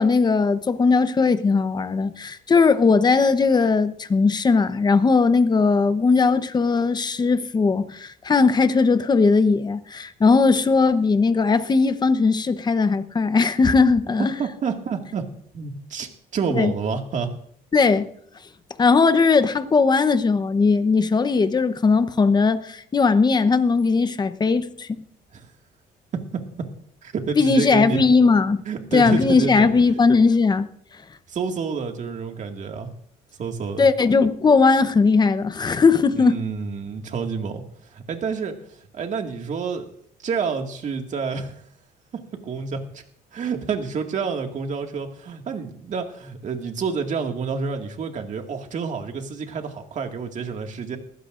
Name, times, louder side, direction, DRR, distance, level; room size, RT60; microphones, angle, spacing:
voice 1, 0.0-14.3 16.5-16.7 17.7-18.1 18.8-24.9 27.4-28.6 28.9-30.7 33.8-36.4, left 4 dB, 25° left, 0.9 m, -18 dB
voice 2, 14.4-15.3 15.5-17.3 25.3-25.5 27.0-28.0 28.6-29.7 31.3-32.9 33.4-33.9 36.2-37.6 37.9-38.6 38.9-39.9 40.2-41.6 42.4-43.0 43.3-51.0, right 5 dB, 45° right, 2.0 m, -28 dB
20.0 x 15.5 x 2.6 m
cardioid pair, 110°, 17 cm